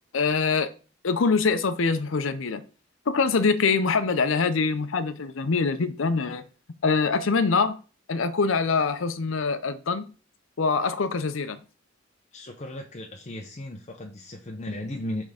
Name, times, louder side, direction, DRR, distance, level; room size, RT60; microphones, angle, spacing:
voice 1, 0.1-0.7 1.0-2.6 3.1-6.4 6.8-7.8 8.1-10.1 10.6-11.6, left 4 dB, 70° left, 0.6 m, -24 dB
voice 2, 12.3-15.2, left 1 dB, 35° left, 0.7 m, -36 dB
6.1 x 3.6 x 4.9 m
head